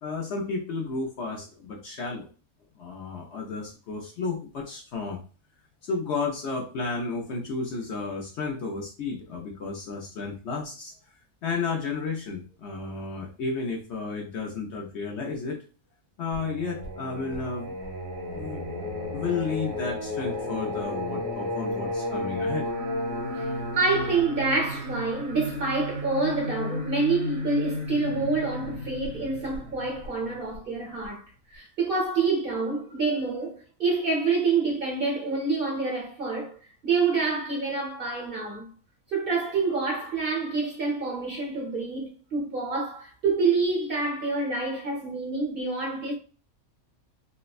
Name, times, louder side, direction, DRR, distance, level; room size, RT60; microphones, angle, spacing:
voice 1, 0.0-2.3 2.8-5.2 5.8-10.9 11.4-15.6 16.2-17.8 18.3-18.6 19.1-22.7, left 4 dB, 60° left, 0.8 m, -32 dB
Singing, 16.3-31.1, left 1 dB, 70° right, 1.6 m, -33 dB
voice 2, 23.3-31.2 31.5-36.6 36.8-38.7 39.1-46.1, right 4 dB, 45° right, 1.0 m, -27 dB
4.1 x 2.1 x 2.3 m
omnidirectional pair, 1.5 m